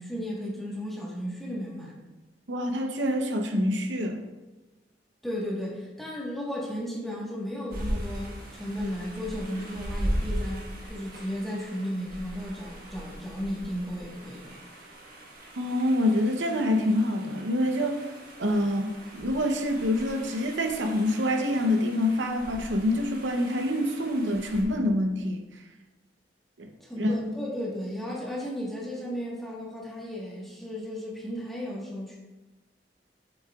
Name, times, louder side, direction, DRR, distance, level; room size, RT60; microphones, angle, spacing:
voice 1, 0.0-2.0 5.2-10.6 10.9-14.6 26.8-32.2, equal, ahead, -5 dB, 1.3 m, -34 dB
voice 2, 2.5-4.3 15.6-18.1 18.4-25.5 26.6-27.1, left 1 dB, 85° right, 4 dB, 0.8 m, -26 dB
sound 1, 7.7-24.6, equal, 50° right, 1.2 m, -38 dB
7.3 x 5.6 x 2.4 m, 1.1 s
head